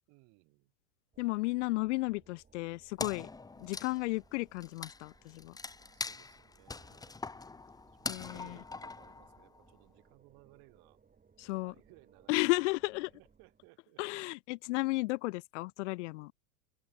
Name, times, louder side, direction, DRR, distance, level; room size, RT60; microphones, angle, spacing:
voice 1, 0.1-0.7 5.8-7.2 7.9-11.0 11.5-12.5 13.0-14.0, right 28 dB, 45° right, 6.1 m, -62 dB
sound 1, 1.1-13.7, right 5 dB, 15° right, 7.3 m, -66 dB
voice 2, 1.2-3.3 3.6-5.6 8.1-8.6 11.4-11.7 12.3-13.1 14.0-16.3, left 23 dB, 50° left, 0.5 m, -33 dB
Wood, 3.0-9.7, left 3 dB, 5° left, 1.2 m, -43 dB
open air
hypercardioid pair, 115°, 50 cm